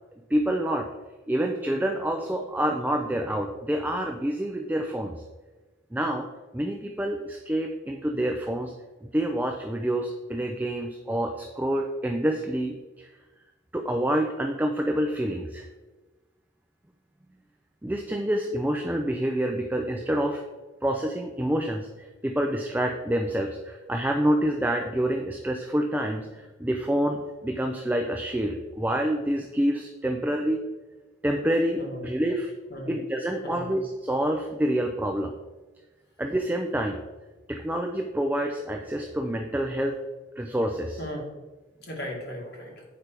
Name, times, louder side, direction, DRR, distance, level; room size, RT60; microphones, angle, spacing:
voice 1, 0.3-0.9 1.3-5.2 5.9-6.3 6.5-8.7 9.0-13.1 13.7-15.7 17.8-20.4 20.8-30.6 31.2-32.5 32.9-35.3 36.2-37.0 37.5-40.0 40.4-41.0, right 1 dB, 10° right, 3 dB, 0.4 m, -27 dB
voice 2, 41.8-42.8, equal, 55° left, -1 dB, 1.8 m, -36 dB
8.1 x 5.0 x 4.4 m, 1.2 s
head